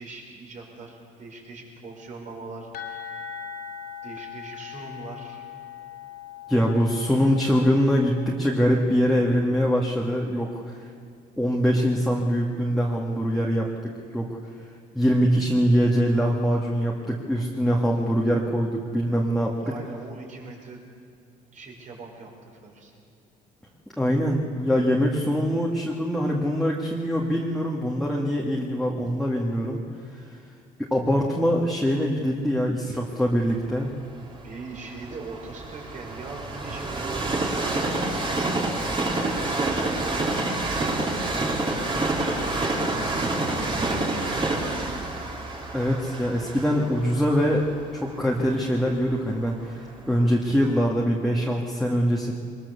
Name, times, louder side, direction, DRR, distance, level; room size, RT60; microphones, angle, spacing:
voice 1, 0.0-3.3 4.0-5.4 19.3-20.8 21.5-22.3 22.6-22.9 34.4-36.9 37.2-38.2 39.6-40.4 41.2-45.2 49.9-50.0, right 3 dB, 45° right, 0 dB, 5.5 m, -41 dB
sound 1, 2.7-8.3, left 8 dB, 70° left, 3.1 m, -40 dB
voice 2, 6.5-10.8 11.4-14.3 15.0-19.5 24.0-29.8 30.9-33.9 45.7-47.7 47.9-52.3, equal, ahead, -3 dB, 2.0 m, -23 dB
Train, 33.5-49.5 50.0-50.1, right 2 dB, 30° right, 3.2 m, -28 dB
22.5 x 20.5 x 7.0 m, 2.3 s
cardioid pair, 110°, 17 cm